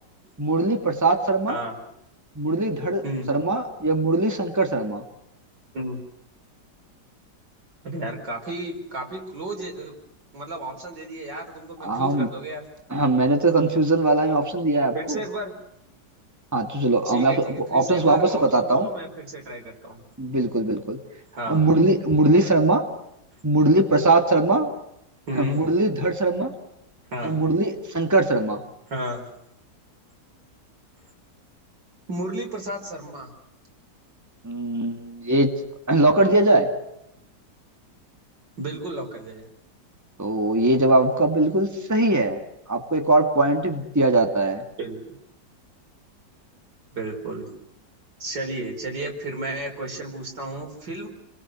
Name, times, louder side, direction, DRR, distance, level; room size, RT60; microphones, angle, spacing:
voice 1, 0.4-1.6 2.4-5.0 11.8-12.3 12.9-15.2 16.5-18.9 20.2-21.0 21.5-22.8 23.4-24.7 25.3-26.5 27.2-28.6 34.4-35.6 35.9-36.7 40.2-42.4 42.7-44.6, right 2 dB, 10° right, 3 dB, 2.4 m, -21 dB
voice 2, 7.8-9.9 10.3-12.6 14.9-15.5 17.1-20.0 21.4-21.6 25.3-25.6 27.1-27.4 28.9-29.3 32.1-33.3 38.6-39.5 44.8-45.1 47.0-47.5 48.2-51.1, right 1 dB, 85° right, 2 dB, 5.7 m, -33 dB
30.0 x 22.0 x 6.5 m, 0.81 s
omnidirectional pair, 1.9 m